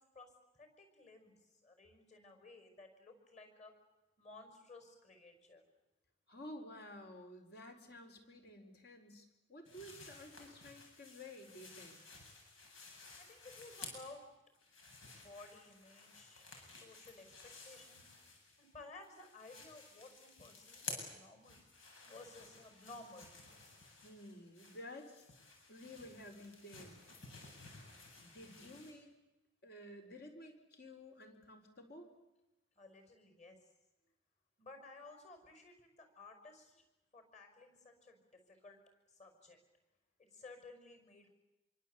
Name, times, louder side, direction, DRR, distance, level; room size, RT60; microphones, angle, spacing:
voice 1, 0.1-3.7 4.2-5.6 13.1-14.2 15.1-18.1 18.6-21.6 22.0-23.3 32.8-33.6 34.6-36.7 37.1-38.8 39.1-39.6 40.2-41.3, left 3 dB, 35° left, 6 dB, 5.9 m, -56 dB
voice 2, 6.3-12.0 24.0-25.4 25.7-27.0 28.2-29.1 29.6-32.1, left 1 dB, 50° left, 5 dB, 4.6 m, -53 dB
sound 1, 9.7-14.2 14.5-18.7 19.0-28.9, left 3 dB, 80° left, 7.8 m, -54 dB
26.5 x 24.5 x 8.4 m, 0.98 s
head